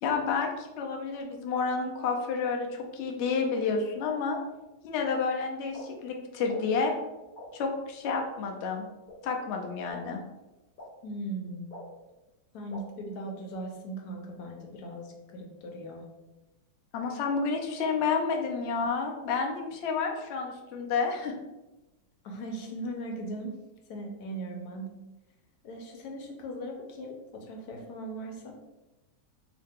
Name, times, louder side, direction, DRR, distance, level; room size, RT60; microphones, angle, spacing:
voice 1, 0.0-4.4 4.8-6.9 7.5-8.8 9.2-10.2 16.9-21.3, left 5 dB, 90° left, 2 dB, 0.6 m, -30 dB
sound 1, 5.7-5.8 6.5-6.6 7.4-7.5 8.2-8.3 9.1-9.2 9.9-10.0 10.8-10.9 11.7-11.8 12.7-12.8, left 2 dB, 45° left, 0.7 m, -44 dB
voice 2, 11.0-11.7 12.5-16.1 22.2-23.5 23.9-24.9 25.6-28.6, right 1 dB, 65° left, 2 dB, 1.1 m, -39 dB
3.9 x 2.8 x 3.5 m, 1.0 s
omnidirectional pair, 1.9 m